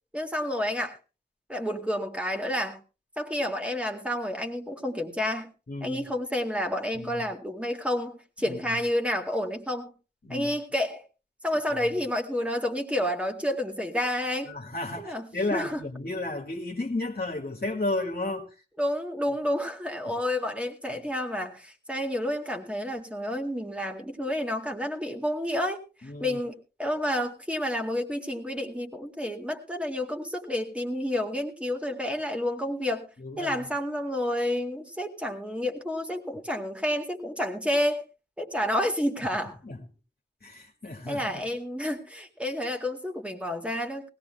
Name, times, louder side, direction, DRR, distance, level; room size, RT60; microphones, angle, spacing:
voice 1, 0.1-1.0 1.5-2.8 3.2-5.5 5.8-9.9 10.3-11.0 11.4-14.5 15.0-15.8 18.8-33.1 33.4-38.1 38.4-39.6 41.1-44.1, left 1 dB, 5° right, 2.1 m, -30 dB
voice 2, 5.7-6.0 6.9-7.2 8.4-8.8 10.2-10.5 11.7-12.0 14.5-18.6 20.0-20.1 26.0-26.4 33.2-33.6 39.6-39.8 40.4-41.4, left 2 dB, 60° left, 1.8 m, -33 dB
20.0 x 17.0 x 2.2 m
wide cardioid pair, 55°, 18 cm